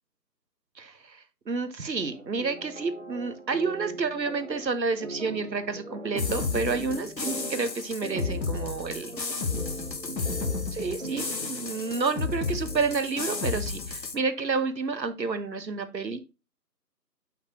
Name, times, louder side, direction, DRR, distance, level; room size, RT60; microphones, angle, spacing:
voice 1, 0.8-9.2 10.7-16.2, right 4 dB, 85° right, 11 dB, 1.1 m, -30 dB
sound 1, 2.0-13.8, right 2 dB, 45° right, 0.6 m, -41 dB
sound 2, 6.2-14.2, left 4 dB, 80° left, 1.2 m, -32 dB
5.9 x 5.7 x 2.9 m, 0.29 s
figure-of-eight pair, 170°, 50 cm